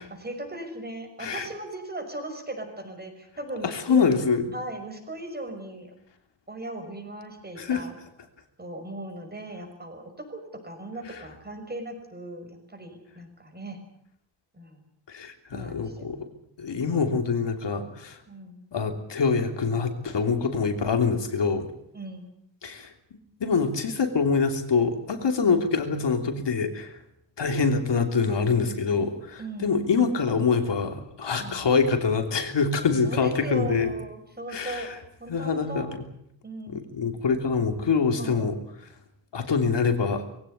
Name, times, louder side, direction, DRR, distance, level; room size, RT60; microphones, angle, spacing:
voice 1, 0.0-4.1 4.5-5.9 6.5-8.0 8.6-13.8 14.5-14.8 15.5-16.1 18.3-18.6 21.9-22.2 25.5-25.6 29.4-29.8 31.4-31.6 33.0-34.9 35.2-35.8 36.4-36.9 38.2-38.4, right 1 dB, 20° right, 4 dB, 6.1 m, -38 dB
voice 2, 3.6-4.4 7.6-7.8 11.1-11.2 15.1-16.3 16.6-18.2 18.7-21.7 22.6-27.0 27.4-33.9 34.5-34.9 35.3-36.0 36.7-38.6 39.3-40.2, left 5 dB, 70° left, 6 dB, 3.2 m, -25 dB
21.5 x 17.0 x 10.0 m, 0.73 s
wide cardioid pair, 145°, 44 cm